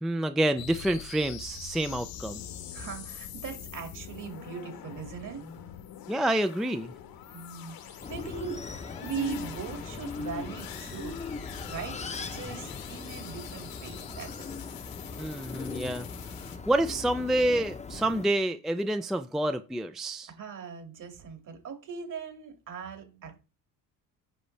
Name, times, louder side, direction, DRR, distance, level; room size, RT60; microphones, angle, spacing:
voice 1, 0.0-2.4 6.1-6.9 15.2-16.1 16.7-20.3, right 1 dB, ahead, 0.4 m, -28 dB
sound 1, 0.6-16.6, left 10 dB, 65° left, 1.2 m, -44 dB
voice 2, 2.7-5.4 7.3-8.6 9.0-11.2 11.7-14.4 20.3-23.4, right 6 dB, 50° right, 2.2 m, -40 dB
sound 2, 8.0-18.3, left 4 dB, 20° left, 0.7 m, -39 dB
8.0 x 5.5 x 3.3 m
cardioid pair, 95°, 38 cm